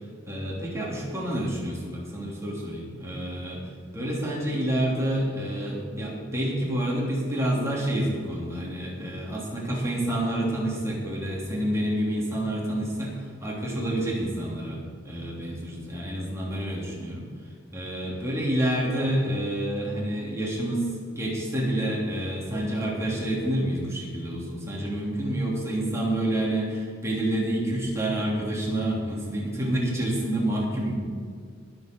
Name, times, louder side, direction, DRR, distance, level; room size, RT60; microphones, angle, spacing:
voice 1, 0.3-3.6 3.9-14.8 15.0-17.2 17.7-20.9 21.1-31.0, right 1 dB, 15° right, -4 dB, 3.1 m, -28 dB
22.0 x 7.7 x 4.6 m, 2.1 s
head